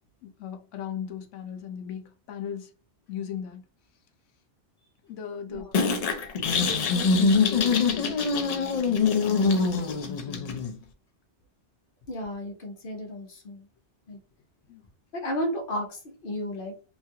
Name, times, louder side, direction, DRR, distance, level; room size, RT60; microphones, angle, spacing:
voice 1, 0.2-2.7 3.1-3.6 5.1-5.7 6.6-10.5 14.7-14.8, left 8 dB, 90° left, 1.0 m, -38 dB
sound 1, 5.7-10.7, left 4 dB, 70° left, 0.3 m, -24 dB
voice 2, 12.1-13.7 14.1-14.2 15.1-16.8, equal, 55° left, 0.9 m, -33 dB
3.0 x 2.3 x 2.7 m
omnidirectional pair, 1.2 m